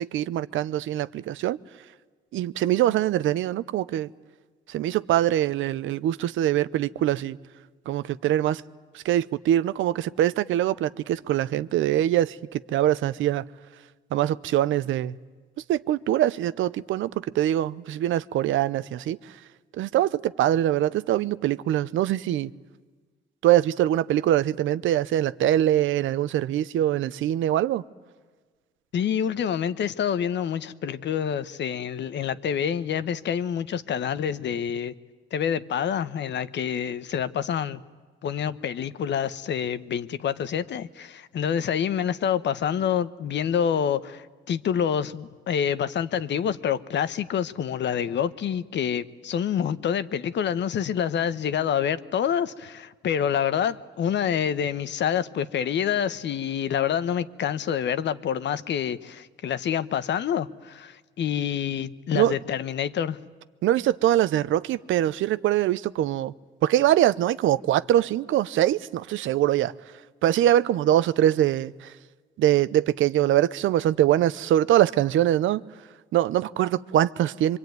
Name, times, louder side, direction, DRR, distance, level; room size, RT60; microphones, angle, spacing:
voice 1, 0.0-1.6 2.3-4.1 4.7-7.4 7.9-8.6 8.9-13.4 14.1-15.1 15.7-19.2 19.8-22.5 23.4-27.8 62.1-62.3 63.6-66.3 66.6-69.7 70.2-71.9 72.4-75.6 76.1-77.6, right 12 dB, 80° right, 0.8 m, -23 dB
voice 2, 28.9-34.9 35.3-37.8 38.2-63.2, left 8 dB, 65° left, 1.1 m, -27 dB
25.0 x 24.5 x 9.4 m
cardioid pair, 90°, 20 cm